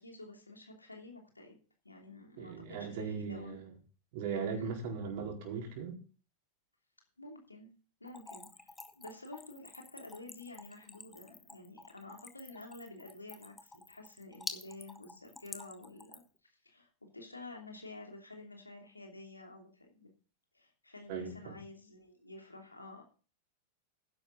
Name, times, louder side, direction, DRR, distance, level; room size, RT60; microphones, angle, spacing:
voice 1, 0.0-1.6 1.8-3.6 4.5-4.7 7.2-20.1 20.5-23.0, left 2 dB, 80° left, 2 dB, 3.0 m, -50 dB
voice 2, 2.4-3.7 4.1-6.0 21.1-21.6, right 6 dB, 50° right, 2 dB, 4.4 m, -38 dB
Splash splatter / Trickle dribble, 8.1-16.4, left 3 dB, 10° left, 1.5 m, -48 dB
13.0 x 10.5 x 4.0 m, 0.38 s
figure-of-eight pair, 90°, 0 cm